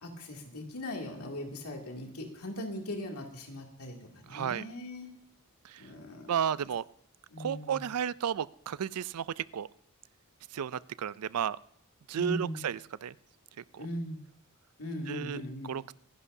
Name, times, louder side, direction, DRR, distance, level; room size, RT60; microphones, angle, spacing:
voice 1, 0.0-5.1 5.8-6.3 7.3-7.8 12.2-12.6 13.8-14.2 14.8-15.7, left 1 dB, 80° left, 1 dB, 2.6 m, -39 dB
voice 2, 4.3-4.6 5.6-5.8 6.3-6.8 7.4-9.7 10.5-11.6 12.1-13.1 13.7-13.8 15.1-15.9, right 8 dB, 85° right, 18 dB, 0.4 m, -33 dB
25.5 x 11.0 x 2.7 m, 0.66 s
head